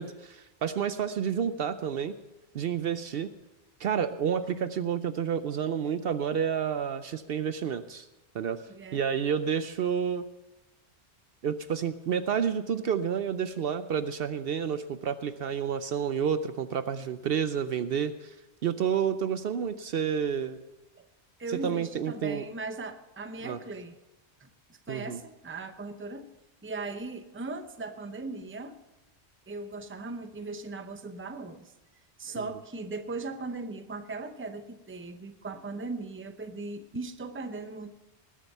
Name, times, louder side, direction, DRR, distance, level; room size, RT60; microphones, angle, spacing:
voice 1, 0.0-2.1 2.5-3.3 3.8-8.1 8.3-8.6 8.9-10.3 11.4-18.3 18.6-20.6 21.5-22.4 23.4-23.6 24.9-25.2, right 7 dB, 65° right, 12 dB, 0.8 m, -30 dB
voice 2, 8.7-9.0 21.0-21.1 21.4-24.0 24.4-26.3 26.6-28.8 29.5-31.7 32.2-38.0, right 3 dB, 15° right, 8 dB, 0.7 m, -38 dB
20.0 x 7.5 x 5.5 m, 1.0 s
omnidirectional pair, 1.1 m